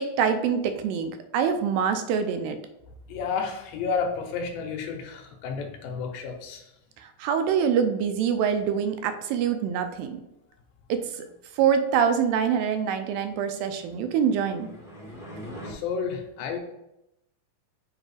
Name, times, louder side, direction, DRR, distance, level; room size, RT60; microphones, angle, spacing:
voice 1, 0.0-2.6 7.2-10.2 10.9-11.2 11.6-14.7, right 7 dB, 80° right, 8 dB, 2.3 m, -25 dB
voice 2, 3.1-6.7 15.6-16.6, left 5 dB, 85° left, 4 dB, 2.6 m, -31 dB
sound 1, 13.8-15.7, equal, 5° right, 0.5 m, -42 dB
7.2 x 2.7 x 4.8 m, 0.86 s
omnidirectional pair, 4.2 m